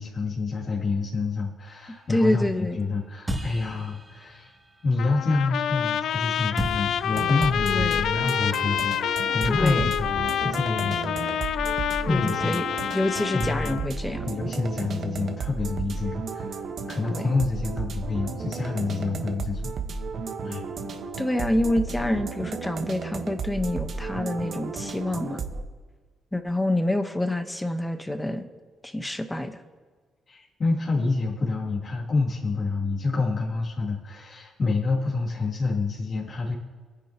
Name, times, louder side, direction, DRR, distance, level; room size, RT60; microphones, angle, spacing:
voice 1, 0.0-4.5 4.8-12.6 12.9-13.0 13.3-13.8 14.2-16.6 16.9-19.7 20.4-20.6 30.3-36.5, left 3 dB, 45° left, -6 dB, 2.7 m, -28 dB
sound 1, 1.6-6.2 6.6-10.0, equal, 20° right, 2.5 m, -39 dB
voice 2, 2.1-2.8 7.6-8.1 9.4-9.9 12.1-12.6 12.9-14.3 17.1-17.3 21.2-25.4 26.3-28.5 28.8-29.6, left 1 dB, 10° left, 8 dB, 1.1 m, -27 dB
Trumpet, 5.0-13.9, left 9 dB, 70° left, 0.4 m, -27 dB
sound 2, 7.1-25.6, right 4 dB, 60° right, 1.3 m, -33 dB
27.5 x 10.0 x 3.0 m, 1.5 s
cardioid pair, 90°, 0 cm